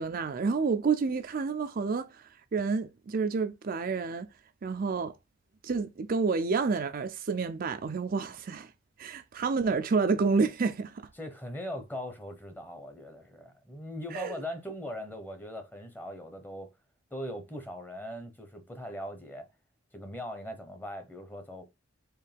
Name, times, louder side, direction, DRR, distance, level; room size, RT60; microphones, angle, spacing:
voice 1, 0.0-2.2 2.5-4.3 4.6-5.1 5.6-8.7 9.0-11.0 14.1-14.3, right 4 dB, 50° right, 0.4 m, -29 dB
voice 2, 11.2-16.7 17.1-19.5 19.9-21.6, left 1 dB, 10° left, 0.9 m, -40 dB
4.7 x 3.2 x 3.4 m
head